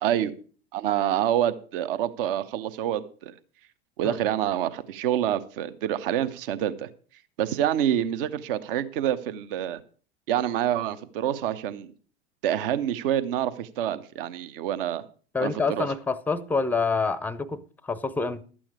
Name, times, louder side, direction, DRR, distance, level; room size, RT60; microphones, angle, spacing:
voice 1, 0.0-0.3 0.7-3.3 4.0-6.9 7.4-9.8 10.3-11.9 12.4-15.0 15.4-15.9, right 11 dB, 55° right, 0.9 m, -27 dB
voice 2, 15.3-18.4, left 4 dB, 5° left, 0.6 m, -27 dB
12.5 x 8.8 x 4.9 m
figure-of-eight pair, 80°, 33 cm